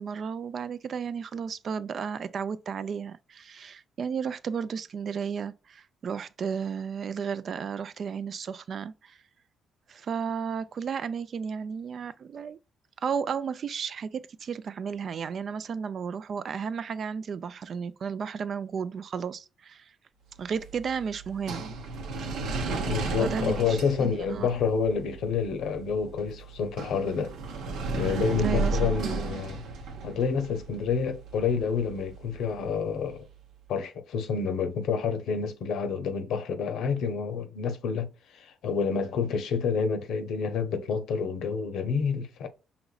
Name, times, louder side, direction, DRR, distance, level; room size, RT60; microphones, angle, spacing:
voice 1, 0.0-9.2 9.9-12.6 13.0-19.9 20.4-21.7 23.2-24.5 28.4-28.9, right 6 dB, 55° right, 0.4 m, -33 dB
sound 1, 20.3-33.4, right 3 dB, 85° right, 0.9 m, -35 dB
voice 2, 22.9-27.3 28.0-29.6 30.0-33.2 33.7-42.5, left 6 dB, 80° left, 0.7 m, -28 dB
5.1 x 3.0 x 2.4 m
cardioid pair, 90°, 0 cm